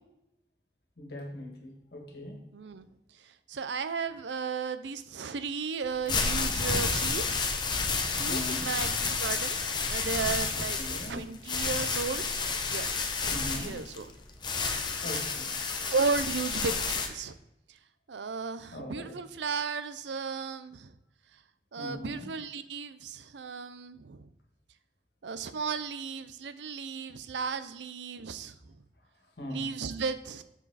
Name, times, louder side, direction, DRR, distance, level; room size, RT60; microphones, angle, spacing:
voice 1, 1.0-2.4 8.3-8.7 10.5-11.3 13.3-13.8 15.0-15.6 18.7-19.1 21.8-22.3 29.4-29.7, left 1 dB, 65° left, 1 dB, 1.8 m, -40 dB
voice 2, 2.5-2.9 3.2-7.4 8.2-9.6 9.8-12.2 12.7-12.9 13.2-14.1 15.9-17.4 18.1-20.9 21.7-24.3 25.2-28.6 29.5-30.4, right 5 dB, 85° right, 12 dB, 0.5 m, -34 dB
sound 1, 5.9-17.1, left 4 dB, 25° left, 0.8 m, -30 dB
7.0 x 5.7 x 4.1 m, 0.84 s
head